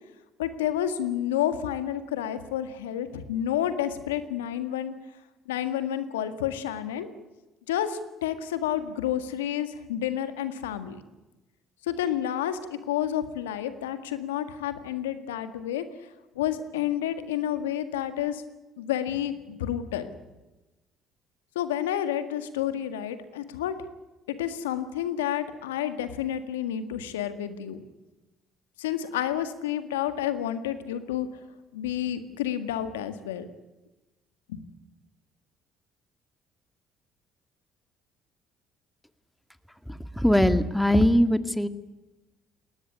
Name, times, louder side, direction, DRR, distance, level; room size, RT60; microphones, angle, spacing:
voice 1, 0.4-4.9 5.5-7.1 7.7-11.0 11.9-12.6 12.9-15.8 16.3-18.4 18.8-20.1 21.5-23.7 24.4-27.8 28.8-31.3 31.7-33.5 34.5-34.6, left 10 dB, 90° left, 11 dB, 1.7 m, -30 dB
voice 2, 40.2-41.7, equal, 5° left, 11 dB, 2.0 m, -21 dB
21.0 x 18.5 x 10.0 m, 1.1 s
hypercardioid pair, 60°, 0 cm